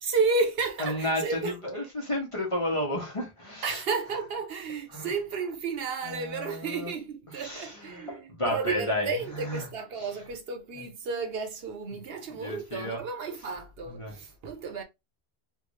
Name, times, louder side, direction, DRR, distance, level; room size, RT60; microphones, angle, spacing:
voice 1, 0.0-1.6 3.6-14.8, right 4 dB, 70° right, 1.0 m, -32 dB
voice 2, 0.8-3.8 4.9-5.1 6.0-6.9 7.3-9.1 9.4-9.7 10.8-10.9 12.4-13.0 13.9-14.1, left 1 dB, 30° left, 0.9 m, -32 dB
3.2 x 2.5 x 3.1 m
omnidirectional pair, 1.1 m